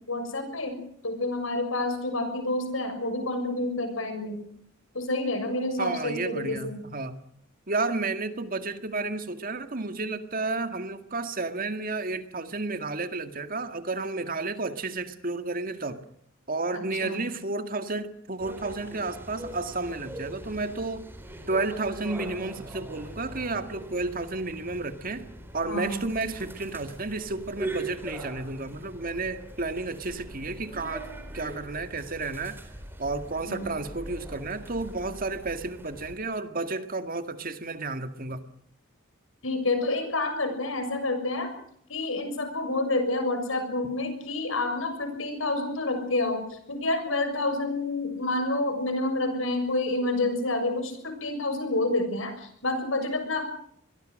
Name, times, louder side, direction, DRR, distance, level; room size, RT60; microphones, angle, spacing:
voice 1, 0.1-0.8 1.0-4.4 4.9-6.8 16.7-17.2 25.7-26.1 33.4-33.8 39.4-41.5 41.9-53.5, left 2 dB, 80° left, 7 dB, 6.7 m, -29 dB
voice 2, 5.8-7.2 7.7-16.0 16.5-21.1 21.5-25.3 25.5-31.1 31.3-32.6 33.0-38.4, right 3 dB, 45° right, 9 dB, 1.9 m, -32 dB
sound 1, 18.4-36.1, right 1 dB, 10° right, 4.1 m, -41 dB
25.0 x 21.5 x 6.5 m, 0.65 s
head